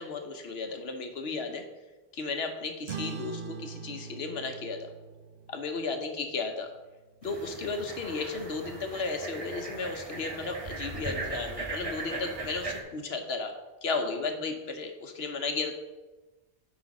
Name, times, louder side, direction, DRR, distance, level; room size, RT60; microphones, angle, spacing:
voice 1, 0.0-1.6 2.1-4.9 5.5-6.7 7.2-13.5 13.8-15.7, left 4 dB, 75° left, 5 dB, 1.2 m, -34 dB
sound 1, 2.9-7.7, right 6 dB, 80° right, 1.0 m, -43 dB
sound 2, 7.2-12.8, right 3 dB, 35° right, 1.0 m, -38 dB
10.0 x 3.9 x 5.3 m, 1.2 s
omnidirectional pair, 1.1 m